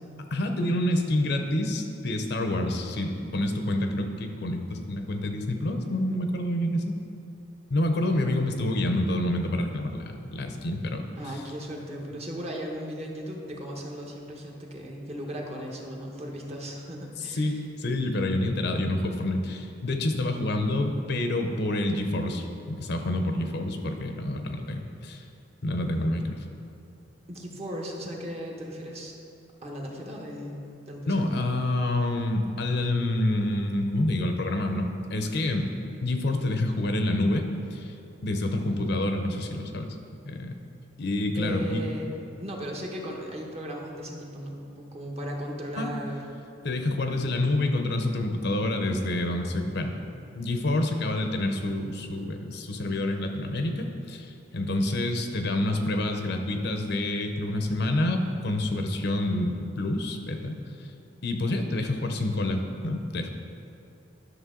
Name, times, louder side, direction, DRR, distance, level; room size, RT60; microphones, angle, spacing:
voice 1, 0.3-7.0 7.7-11.1 17.2-25.2 25.6-26.4 31.1-35.7 36.0-37.9 38.2-39.9 40.3-40.6 41.0-41.8 45.8-45.9 46.6-50.0 50.4-60.6 61.2-63.3, left 1 dB, 65° left, 5 dB, 0.7 m, -28 dB
voice 2, 11.2-17.6 27.3-29.1 29.6-30.6 30.9-31.3 41.3-46.4, equal, 35° right, -1 dB, 1.1 m, -37 dB
11.0 x 6.3 x 3.8 m, 2.5 s
head